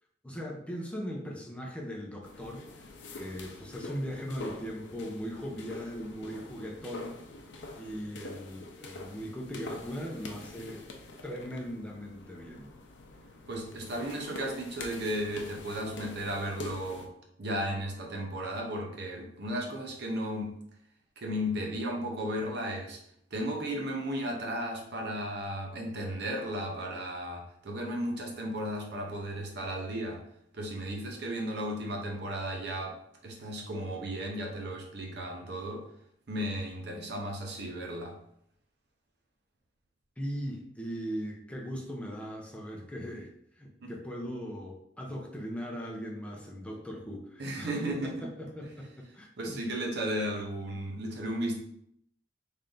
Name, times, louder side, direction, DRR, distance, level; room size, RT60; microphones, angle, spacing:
voice 1, 0.2-2.6 3.2-7.1 7.7-10.9 11.2-12.7 40.2-43.3 43.6-49.6, equal, 5° left, -1 dB, 0.6 m, -39 dB
sound 1, 2.2-17.1, left 2 dB, 70° left, 0.6 m, -45 dB
voice 2, 13.5-17.1 17.4-20.5 21.2-23.0 23.3-30.2 30.5-33.0 33.2-35.8 36.3-38.2 43.8-43.9 47.4-48.3 49.4-51.6, equal, 60° right, 1 dB, 0.7 m, -34 dB
3.3 x 2.6 x 3.8 m, 0.72 s
head